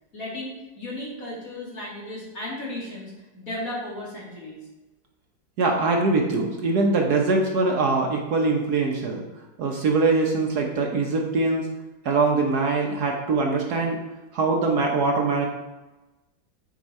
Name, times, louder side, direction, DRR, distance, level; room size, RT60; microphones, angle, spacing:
voice 1, 0.1-4.7, left 1 dB, 45° left, -5 dB, 2.6 m, -35 dB
voice 2, 5.6-9.2 9.6-11.7 12.0-14.0 14.3-15.5, right 3 dB, 60° right, 1 dB, 1.3 m, -22 dB
8.9 x 4.6 x 4.2 m, 1.1 s
omnidirectional pair, 2.1 m